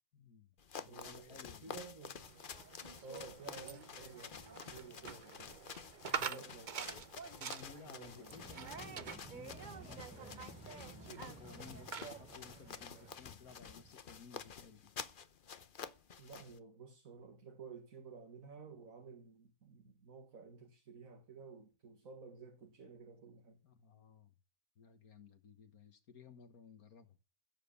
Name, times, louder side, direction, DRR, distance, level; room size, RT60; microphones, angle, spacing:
voice 1, 0.1-0.5 0.8-1.9 6.0-6.4 7.4-14.9 23.6-24.3 24.8-27.2, left 6 dB, 70° left, 1.9 m, -57 dB
sound 1, 0.6-16.6, left 6 dB, 45° left, 0.8 m, -50 dB
voice 2, 0.9-2.3 3.0-5.6 6.1-7.1 7.9-8.6 16.2-23.6, right 5 dB, 60° right, 2.1 m, -53 dB
sound 2, 2.2-13.1, right 6 dB, 40° right, 0.8 m, -47 dB
sound 3, 8.3-14.0, right 2 dB, 5° right, 1.8 m, -56 dB
16.0 x 7.6 x 7.2 m
omnidirectional pair, 1.6 m